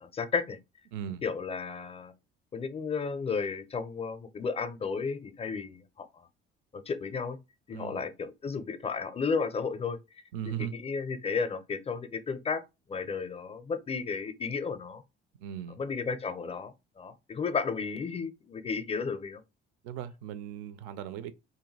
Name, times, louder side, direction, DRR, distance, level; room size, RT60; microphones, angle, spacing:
voice 1, 0.0-0.6 1.2-2.1 2.5-6.3 6.7-7.4 7.7-10.0 10.5-12.6 12.9-15.0 15.8-19.4, left 5 dB, 20° left, 0.5 m, -33 dB
voice 2, 0.9-1.2 7.7-8.0 10.3-10.8 15.4-15.8 19.8-21.3, right 10 dB, 60° right, 0.5 m, -38 dB
2.6 x 2.2 x 3.2 m
figure-of-eight pair, 50°, 29 cm